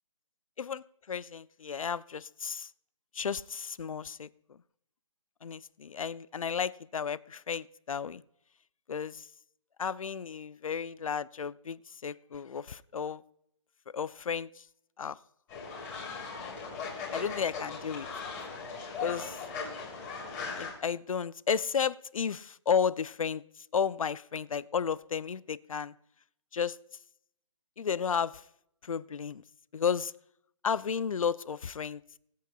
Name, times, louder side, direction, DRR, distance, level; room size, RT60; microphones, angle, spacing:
voice 1, 0.6-2.7 3.1-4.3 5.4-8.2 8.9-9.2 9.8-13.2 13.9-14.5 15.0-15.2 17.1-18.1 19.0-19.4 20.4-23.4 23.7-25.9 26.5-26.8 27.8-28.4 28.8-29.4 29.7-30.1 30.6-32.0, left 7 dB, 80° left, 0.5 m, -33 dB
Fowl, 15.5-20.7, left 5 dB, 15° left, 3.2 m, -39 dB
20.0 x 8.4 x 2.3 m
hypercardioid pair, 170°, 17 cm